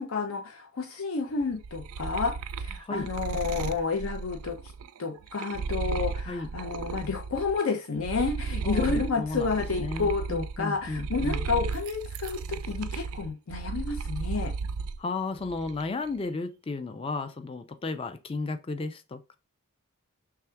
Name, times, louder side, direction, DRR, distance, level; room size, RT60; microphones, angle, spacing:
voice 1, 0.0-4.6 5.0-14.5, left 4 dB, 75° left, 0.6 m, -30 dB
sound 1, 1.4-7.6 8.0-15.0 15.4-16.0, right 5 dB, 85° right, 0.3 m, -34 dB
voice 2, 8.6-9.5 9.8-11.5 15.0-19.4, left 3 dB, 25° left, 0.3 m, -34 dB
3.4 x 2.4 x 4.4 m
head